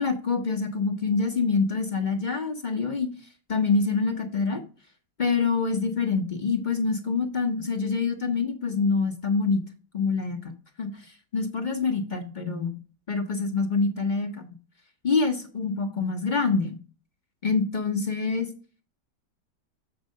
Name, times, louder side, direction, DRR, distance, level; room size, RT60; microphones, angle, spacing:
voice 1, 0.0-3.1 3.5-4.6 5.2-9.6 9.9-12.7 13.1-14.5 15.0-16.8 17.4-18.5, left 4 dB, 40° left, 4 dB, 0.7 m, -26 dB
7.2 x 4.7 x 6.3 m, 0.38 s
omnidirectional pair, 1.8 m